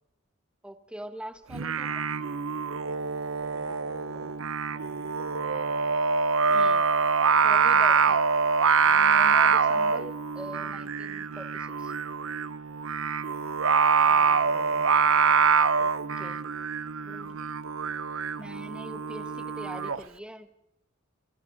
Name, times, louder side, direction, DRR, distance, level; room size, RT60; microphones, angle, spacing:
voice 1, 0.6-2.1 6.5-6.8 7.4-8.2 8.8-11.9 15.8-16.4 17.0-17.4 18.4-20.5, equal, 5° right, 9 dB, 1.2 m, -42 dB
Singing, 1.5-20.0, right 5 dB, 85° right, 0.7 m, -25 dB
voice 2, 3.4-4.3 4.7-5.7 14.0-15.3 16.0-16.3, right 1 dB, 30° right, -3 dB, 3.5 m, -51 dB
29.0 x 23.0 x 3.9 m, 0.81 s
head